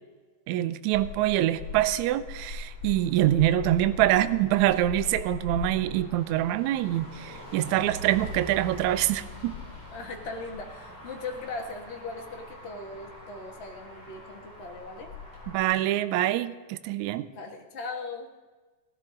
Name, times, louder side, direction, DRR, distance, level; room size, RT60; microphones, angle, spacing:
voice 1, 0.5-9.6 15.5-17.3, right 14 dB, 80° right, 14 dB, 1.7 m, -25 dB
Motor vehicle (road), 0.9-15.6, left 3 dB, 5° left, 5.2 m, -41 dB
voice 2, 9.9-15.1 17.3-18.3, left 3 dB, 90° left, 1 dB, 0.5 m, -39 dB
17.5 x 13.0 x 3.8 m, 1.3 s
omnidirectional pair, 3.7 m